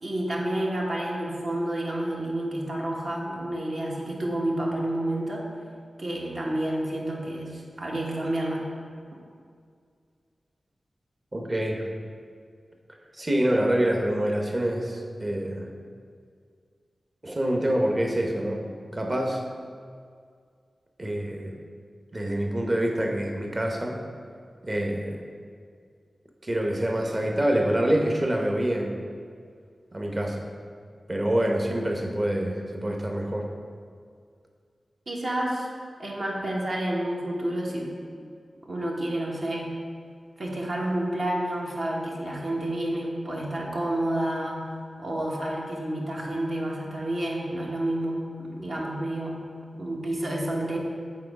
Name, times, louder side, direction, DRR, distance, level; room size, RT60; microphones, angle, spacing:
voice 1, 0.0-5.5 6.0-8.7 35.1-35.7 36.0-37.9 38.6-39.7 40.4-44.7 45.0-49.4 49.8-50.8, right 1 dB, 60° right, -2 dB, 1.3 m, -29 dB
voice 2, 11.3-11.9 13.2-15.7 17.2-19.4 21.0-21.6 22.1-24.0 24.6-25.2 26.4-28.9 29.9-30.5 31.1-33.5, right 1 dB, 30° right, 2 dB, 0.9 m, -26 dB
7.7 x 4.0 x 4.8 m, 2.2 s
wide cardioid pair, 70°, 0 cm